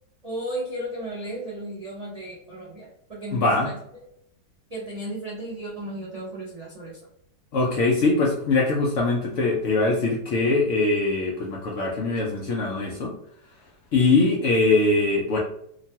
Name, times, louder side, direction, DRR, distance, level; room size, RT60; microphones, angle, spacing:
voice 1, 0.2-3.8 4.7-7.0, right 1 dB, 55° right, -6 dB, 0.4 m, -34 dB
voice 2, 3.3-3.7 7.5-13.1 13.9-15.4, left 3 dB, 65° left, -2 dB, 0.7 m, -22 dB
2.9 x 2.2 x 2.7 m, 0.74 s
omnidirectional pair, 1.7 m